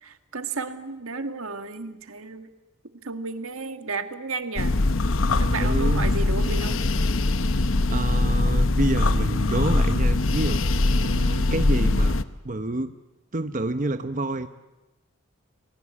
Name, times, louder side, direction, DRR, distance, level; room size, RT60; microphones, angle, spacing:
voice 1, 0.0-2.5 3.0-4.7 5.4-6.8, right 3 dB, 80° right, 8 dB, 1.9 m, -33 dB
sound 1, 4.6-12.2, left 2 dB, 70° left, 1.0 m, -22 dB
voice 2, 5.6-6.1 7.9-10.6 11.0-12.2 12.4-13.0 13.3-14.5, right 2 dB, 40° right, 8 dB, 0.9 m, -28 dB
30.0 x 19.5 x 8.6 m, 1.0 s
head